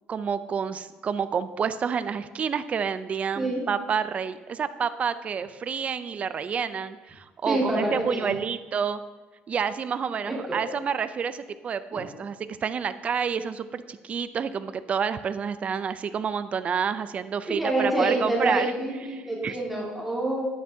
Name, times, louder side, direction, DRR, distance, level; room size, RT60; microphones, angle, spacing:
voice 1, 0.1-9.0 9.5-18.7 19.1-19.6, right 6 dB, 35° right, 13 dB, 0.4 m, -29 dB
voice 2, 7.5-8.3 10.3-10.6 11.9-12.1 17.4-20.4, right 1 dB, 5° right, -5 dB, 2.1 m, -27 dB
10.5 x 9.5 x 2.8 m, 1.3 s
cardioid pair, 130°, 4 cm